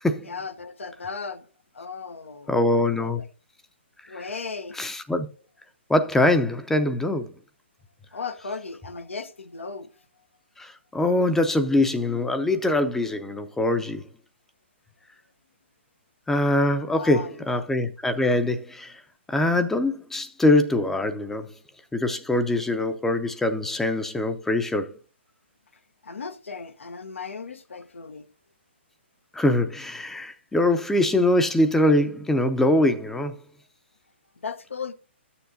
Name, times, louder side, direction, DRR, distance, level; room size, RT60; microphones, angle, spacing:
voice 1, 0.2-1.5 1.7-3.3 4.1-4.8 8.1-10.0 16.9-17.7 26.0-28.3 34.4-34.9, left 5 dB, 90° left, 0.8 m, -36 dB
voice 2, 2.5-3.2 4.8-5.3 5.9-7.3 10.6-14.0 16.3-19.0 19.3-21.5 21.9-25.0 29.3-33.4, left 1 dB, 5° left, 0.5 m, -23 dB
12.5 x 6.9 x 2.6 m
hypercardioid pair, 140°, 7 cm